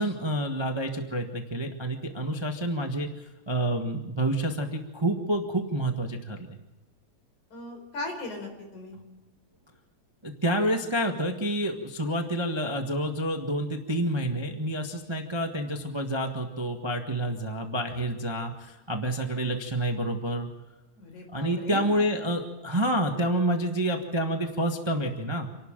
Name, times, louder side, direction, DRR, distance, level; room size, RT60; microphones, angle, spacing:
voice 1, 0.0-3.1 3.5-6.6 10.2-20.5 21.3-25.5, right 1 dB, 20° right, 4 dB, 0.8 m, -28 dB
voice 2, 7.5-9.0 21.0-22.0, left 2 dB, 80° left, 4 dB, 5.7 m, -38 dB
28.0 x 12.0 x 8.9 m, 1.0 s
omnidirectional pair, 3.3 m